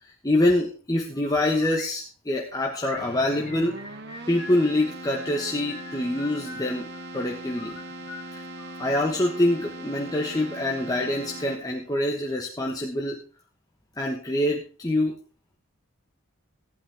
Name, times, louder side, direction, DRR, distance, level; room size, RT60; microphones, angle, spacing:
voice 1, 0.0-3.8 4.3-7.8 8.3-8.4 8.8-13.2 14.0-15.2, left 1 dB, 15° left, 0 dB, 1.2 m, -25 dB
sound 1, 1.1-1.9 2.6-4.7 5.2-7.0 7.5-9.4, left 3 dB, 45° left, 4.0 m, -44 dB
Keyboard (musical), 3.0-11.9, right 1 dB, 50° right, 1.5 m, -40 dB
14.5 x 11.0 x 3.5 m, 0.37 s
head